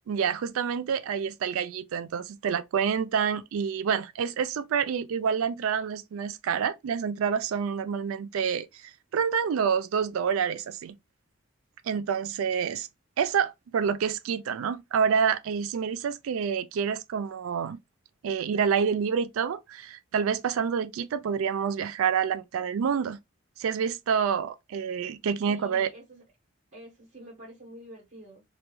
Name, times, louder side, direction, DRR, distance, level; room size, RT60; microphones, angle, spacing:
voice 1, 0.1-11.0 11.8-12.9 13.2-17.8 18.2-23.2 23.6-25.9, right 7 dB, 85° right, 0.3 m, -28 dB
voice 2, 25.5-26.2 26.7-28.4, right 1 dB, 40° right, 0.9 m, -47 dB
2.3 x 2.2 x 2.9 m
head